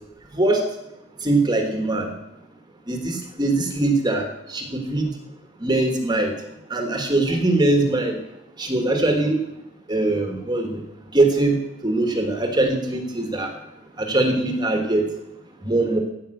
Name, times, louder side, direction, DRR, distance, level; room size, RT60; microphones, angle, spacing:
voice 1, 0.3-0.6 1.2-2.1 2.9-5.1 5.6-6.3 6.7-8.2 8.6-9.4 9.9-10.8 11.1-11.6 11.8-13.5 14.0-15.1 15.6-16.0, right 2 dB, 20° right, 4 dB, 1.3 m, -21 dB
15.0 x 5.3 x 7.6 m, 0.89 s
head